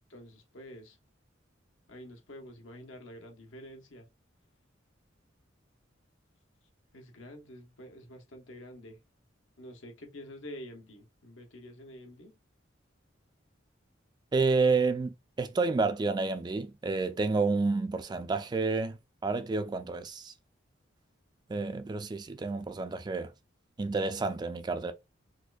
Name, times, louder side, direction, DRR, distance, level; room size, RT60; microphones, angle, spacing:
voice 1, 0.1-1.0 1.9-4.1 6.9-9.0 9.6-12.4, equal, 85° left, 1.0 m, -48 dB
voice 2, 14.3-19.0 19.2-20.3 21.5-23.3 23.8-24.9, right 3 dB, 20° right, 0.3 m, -29 dB
4.3 x 2.5 x 2.3 m
head